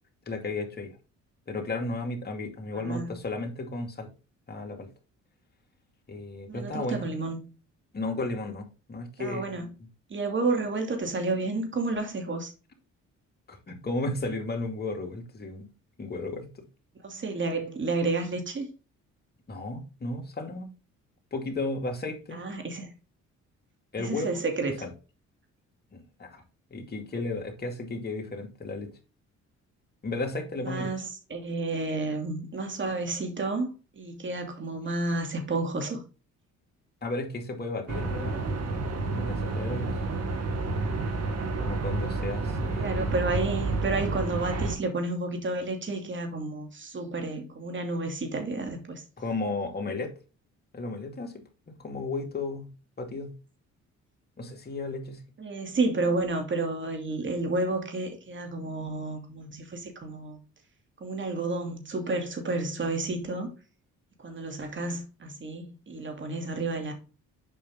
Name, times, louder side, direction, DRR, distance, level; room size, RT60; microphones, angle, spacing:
voice 1, 0.3-1.0 1.5-4.1 4.5-4.9 6.1-7.1 7.9-9.7 13.5-15.7 16.0-16.5 19.5-20.7 21.3-22.4 23.9-24.4 24.8-24.9 25.9-26.4 26.7-28.9 30.0-30.9 37.0-38.6 39.1-40.0 41.6-43.0 49.2-50.1 50.7-52.7 53.0-53.3 54.4-55.2, left 2 dB, 35° left, 2.4 m, -34 dB
voice 2, 2.8-3.1 6.5-7.5 9.2-9.7 10.1-12.5 17.0-18.7 22.3-22.9 24.0-24.8 30.6-33.7 34.0-36.0 42.8-49.0 55.4-60.4 61.0-63.5 64.2-66.9, right 3 dB, 40° right, 2.7 m, -31 dB
sound 1, 37.9-44.8, right 3 dB, 55° right, 2.0 m, -30 dB
7.7 x 5.2 x 3.6 m
cardioid pair, 90°, 30 cm